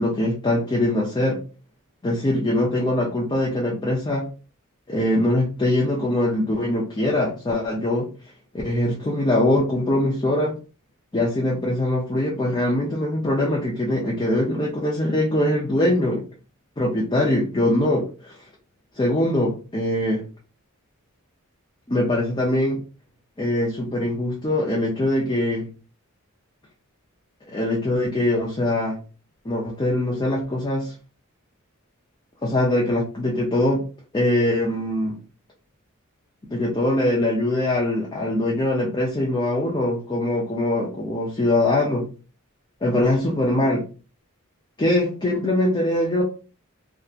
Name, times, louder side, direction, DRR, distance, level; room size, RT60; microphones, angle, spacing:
voice 1, 0.0-1.4 2.0-4.2 4.9-8.1 8.6-10.5 11.1-16.2 16.8-18.3 19.0-20.2 21.9-22.8 23.4-25.7 27.5-29.0 29.4-30.9 32.4-33.8 34.1-35.2 36.5-42.1 42.8-43.8 44.8-46.2, left 1 dB, 20° left, -3 dB, 0.5 m, -22 dB
2.7 x 2.4 x 2.4 m, 0.34 s
head